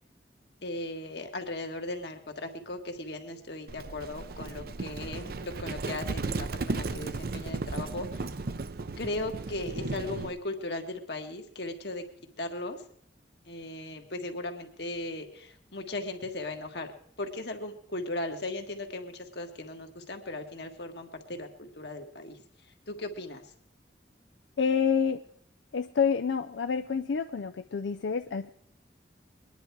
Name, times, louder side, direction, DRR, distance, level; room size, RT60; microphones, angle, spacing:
voice 1, 0.6-8.2 9.0-12.0 12.4-12.8 13.5-16.9 17.2-22.4 22.9-23.4, left 2 dB, 65° left, 4 dB, 1.6 m, -37 dB
Livestock farm animals working animals, 3.7-10.3, right 3 dB, 55° right, 0.6 m, -35 dB
voice 2, 24.6-25.2 25.7-28.5, left 6 dB, 90° left, 8 dB, 0.5 m, -28 dB
22.0 x 10.0 x 4.7 m, 0.66 s
head